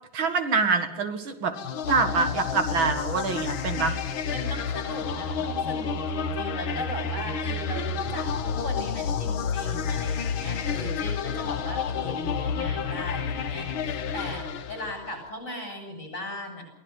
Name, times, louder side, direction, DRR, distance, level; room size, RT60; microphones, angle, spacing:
voice 1, 0.1-1.5 1.9-4.0, right 4 dB, 75° right, 7 dB, 2.6 m, -25 dB
sound 1, 1.6-15.2, left 6 dB, 85° left, 2.0 m, -30 dB
voice 2, 4.3-16.6, left 2 dB, 35° left, 3 dB, 7.7 m, -37 dB
23.0 x 16.5 x 8.0 m, 0.91 s
omnidirectional pair, 2.2 m